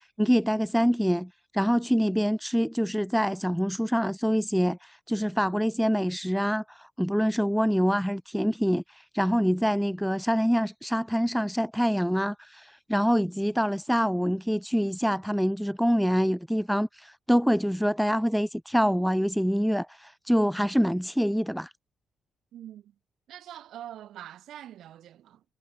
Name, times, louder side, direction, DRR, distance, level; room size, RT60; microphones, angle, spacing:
voice 1, 0.0-21.7, equal, ahead, 0.4 m, -25 dB
voice 2, 22.5-22.9 23.3-25.4, right 11 dB, 75° right, 4.8 m, -44 dB
cardioid pair, 90°, 0 cm